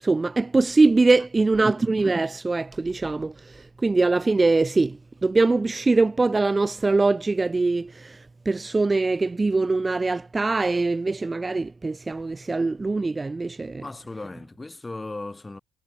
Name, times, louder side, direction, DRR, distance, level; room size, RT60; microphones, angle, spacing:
voice 1, 0.0-13.8, right 3 dB, 25° right, 0.3 m, -22 dB
voice 2, 1.4-1.8 13.8-15.6, left 2 dB, 20° left, 5.3 m, -37 dB
cardioid pair, 90°, 0 cm